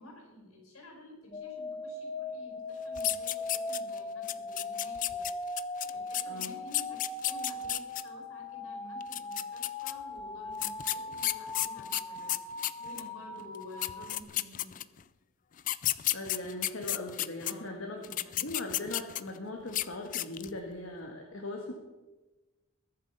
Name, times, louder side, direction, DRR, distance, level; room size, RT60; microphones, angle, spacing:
voice 1, 0.0-5.2 5.8-14.8 17.4-18.5, left 1 dB, 85° left, 1 dB, 5.3 m, -52 dB
sound 1, 1.3-14.2, left 2 dB, 20° left, 0.9 m, -39 dB
sound 2, 3.0-4.0 4.3-8.0 9.0-9.9 10.6-13.1 13.5-13.6 13.8-15.0 15.6-17.5 18.0-19.4 19.7-19.9 20.1-20.6, left 14 dB, 35° left, 0.4 m, -32 dB
voice 2, 16.1-18.0 18.4-21.7, left 2 dB, 65° left, 1 dB, 1.6 m, -39 dB
21.0 x 7.4 x 5.6 m, 1.1 s
head